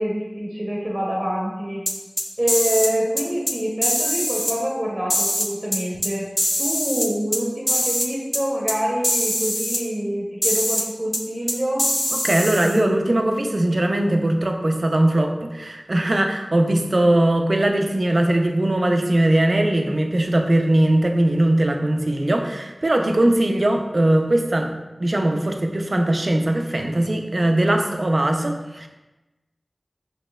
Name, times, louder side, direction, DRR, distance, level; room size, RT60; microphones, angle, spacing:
voice 1, 0.0-1.8 2.4-6.3 6.6-11.8, equal, 35° right, -4 dB, 0.8 m, -26 dB
sound 1, 1.9-2.9 3.2-3.5 3.8-4.5 5.1-6.1 6.4-7.4 7.7-8.1 8.3-8.4 8.7-8.8 9.0-9.8 10.4-10.8 11.1-11.2 11.5-12.8, equal, 10° left, 0.4 m, -23 dB
voice 2, 12.2-24.7 25.0-28.9, right 1 dB, 60° right, 4 dB, 0.4 m, -20 dB
5.1 x 2.9 x 2.3 m, 1.1 s
wide cardioid pair, 50°, 0 cm